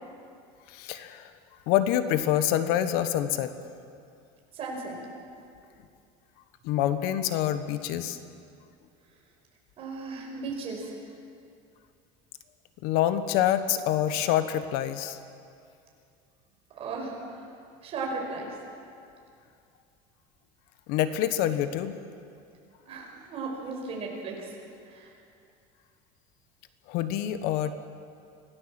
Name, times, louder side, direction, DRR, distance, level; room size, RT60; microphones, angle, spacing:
voice 1, 0.7-1.3 1.7-3.5 6.6-8.2 12.8-15.2 20.9-22.0 26.9-27.7, left 11 dB, 65° left, 11 dB, 1.3 m, -26 dB
voice 2, 4.5-5.0 9.8-10.9 16.8-17.1 17.8-18.5 22.9-24.5 24.9-25.1, right 3 dB, 35° right, 0 dB, 5.5 m, -35 dB
26.0 x 17.0 x 7.7 m, 2.4 s
cardioid pair, 160°, 17 cm